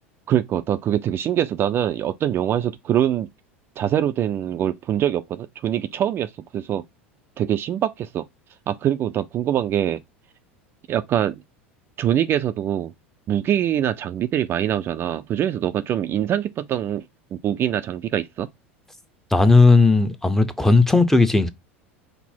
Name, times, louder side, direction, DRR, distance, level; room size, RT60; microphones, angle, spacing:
voice 1, 0.3-3.3 3.8-6.8 7.4-8.3 8.7-10.0 10.9-11.4 12.0-12.9 13.3-17.0 17.3-18.5, right 10 dB, 35° right, 0.4 m, -23 dB
voice 2, 19.3-21.5, left 3 dB, 5° left, 0.7 m, -15 dB
5.4 x 2.0 x 4.4 m
figure-of-eight pair, 80°, 7 cm